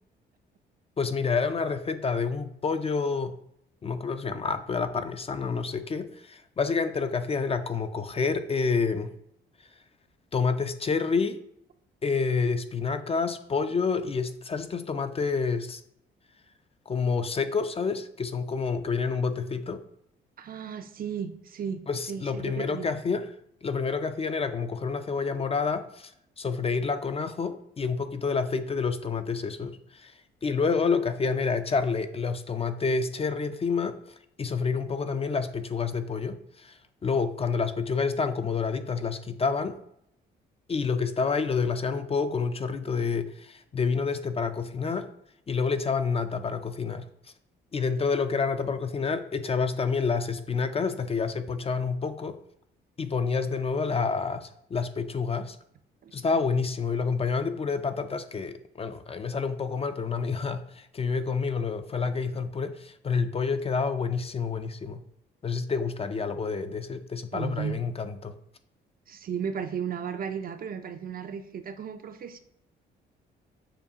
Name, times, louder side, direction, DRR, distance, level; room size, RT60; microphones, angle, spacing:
voice 1, 1.0-3.3 3.8-9.1 10.3-11.4 12.0-15.8 16.9-19.8 21.9-23.3 23.6-26.1 26.4-30.1 30.4-34.0 34.4-39.8 40.7-45.1 45.5-47.1 47.7-52.4 53.0-55.6 56.1-65.0 65.4-68.4, left 5 dB, 30° left, 10 dB, 0.4 m, -28 dB
voice 2, 20.4-21.8 22.1-23.0 56.0-56.1 67.3-67.8 69.1-72.4, right 7 dB, 45° right, 9 dB, 0.5 m, -34 dB
6.8 x 2.3 x 2.8 m, 0.73 s
supercardioid pair, 65°, 21 cm